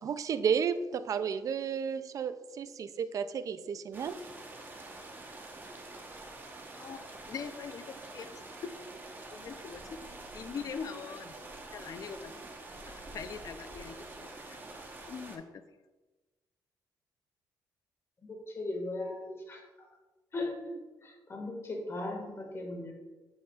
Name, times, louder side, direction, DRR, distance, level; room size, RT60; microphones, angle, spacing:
voice 1, 0.0-4.2, right 7 dB, 45° right, 12 dB, 0.4 m, -32 dB
sound 1, 3.9-15.4, right 2 dB, 25° right, 1.0 m, -46 dB
voice 2, 7.3-8.3 8.6-8.7 9.3-9.8 10.3-11.4 11.7-12.3 12.8-14.3 15.1-15.6, left 6 dB, 50° left, 10 dB, 0.6 m, -42 dB
voice 3, 18.2-19.6 20.3-20.7 21.0-22.9, left 2 dB, 35° left, 0 dB, 1.7 m, -38 dB
7.7 x 7.1 x 2.4 m, 1.2 s
cardioid pair, 110°, 8 cm